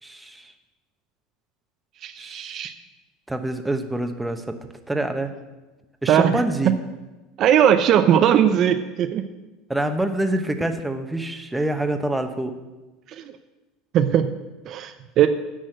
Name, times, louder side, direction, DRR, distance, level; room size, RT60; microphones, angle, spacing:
voice 1, 0.0-0.5 2.2-2.6 3.3-4.6 4.9-5.3 6.0-6.7 9.7-12.6, right 1 dB, 5° right, 6 dB, 1.3 m, -26 dB
voice 2, 2.0-2.7 6.1-6.4 7.4-9.3 13.1-13.2 13.9-14.3 14.6-15.3, right 9 dB, 50° right, 8 dB, 0.7 m, -19 dB
10.0 x 6.4 x 7.7 m, 1.1 s
hypercardioid pair, 80°, 0 cm